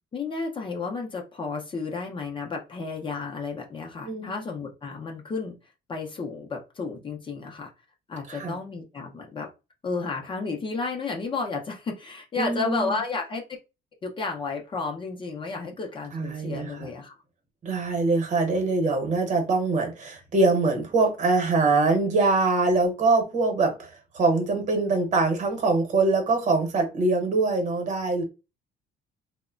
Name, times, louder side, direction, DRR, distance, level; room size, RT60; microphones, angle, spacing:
voice 1, 0.1-5.5 5.9-7.7 8.1-9.5 9.8-13.4 14.0-17.2, left 4 dB, 30° left, 0.6 m, -32 dB
voice 2, 12.4-13.0 16.1-16.9 17.6-28.2, right 3 dB, 45° right, 1.0 m, -23 dB
2.8 x 2.1 x 2.4 m
cardioid pair, 110°, 17 cm